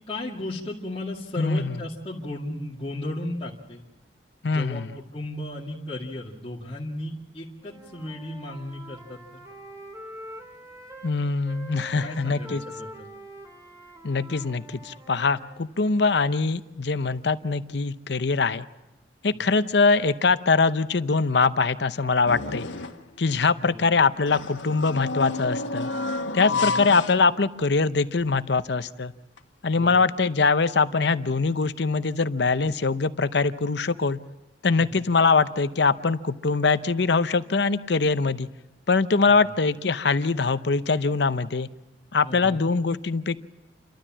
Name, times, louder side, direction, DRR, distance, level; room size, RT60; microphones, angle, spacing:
voice 1, 0.0-3.8 4.4-9.2 12.0-13.1 19.3-19.4 23.5-24.0 26.5-26.9 29.7-30.1 34.8-35.0 39.4-39.5 42.2-42.6, left 1 dB, 30° left, -6 dB, 2.1 m, -35 dB
voice 2, 1.4-1.8 4.4-4.9 11.0-12.6 14.0-18.7 19.2-22.7 23.2-25.9 26.3-29.1 29.6-34.2 34.6-38.5 38.9-41.7 42.1-43.4, left 4 dB, 60° left, 13 dB, 0.7 m, -23 dB
Wind instrument woodwind instrument, 7.6-11.1 11.4-15.7, equal, 15° right, 2.1 m, -44 dB
sound 1, 22.3-23.1 24.2-27.8 28.2-28.3 29.4-29.5, left 3 dB, 85° left, 1.5 m, -31 dB
29.0 x 13.0 x 7.4 m, 1.0 s
head